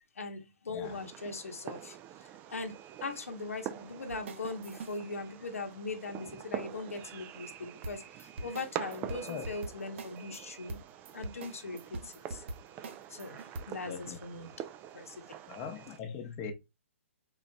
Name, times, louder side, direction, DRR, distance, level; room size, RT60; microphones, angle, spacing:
voice 1, 0.1-10.8 11.1-12.5 13.1-14.5 14.9-15.2, left 3 dB, 80° left, 0.9 m, -40 dB
Fireworks, 0.8-16.0, right 11 dB, 25° right, 0.3 m, -45 dB
sound 1, 4.1-5.0 7.8-10.4 10.7-13.6, right 2 dB, 55° right, 0.7 m, -42 dB
voice 2, 13.9-14.5 15.5-16.5, left 6 dB, 30° left, 0.8 m, -41 dB
3.9 x 3.9 x 2.2 m
hypercardioid pair, 135°, 7 cm